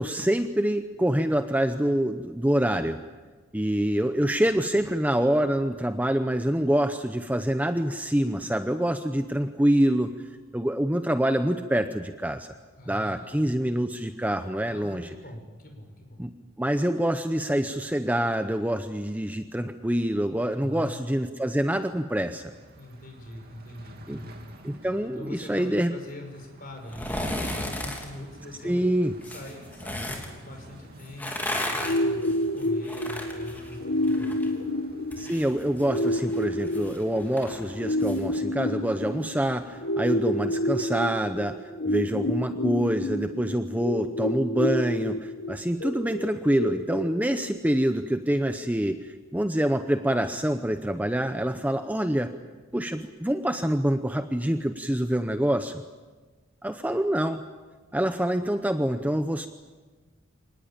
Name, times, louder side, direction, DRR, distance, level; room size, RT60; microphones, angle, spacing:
voice 1, 0.0-3.0 3.5-10.1 10.5-12.5 12.9-15.1 16.2-16.3 16.6-22.5 24.1-24.2 24.6-25.9 28.6-29.1 35.2-41.6 41.9-52.3 52.7-55.8 56.6-57.4 57.9-59.5, right 1 dB, 10° right, 8 dB, 0.8 m, -26 dB
voice 2, 12.7-13.5 14.7-16.2 20.5-21.1 22.7-24.4 25.2-28.8 29.2-34.6, left 1 dB, 45° left, 3 dB, 5.8 m, -43 dB
sound 1, 22.4-40.6, right 1 dB, 50° right, 2.6 m, -51 dB
sound 2, 26.8-28.1 29.2-30.3 31.0-34.5 34.8-38.2 38.6-38.7, left 1 dB, 10° left, 3.0 m, -34 dB
sound 3, 31.8-47.8, left 1 dB, 75° left, 2.0 m, -29 dB
25.5 x 19.5 x 8.8 m, 1.3 s
head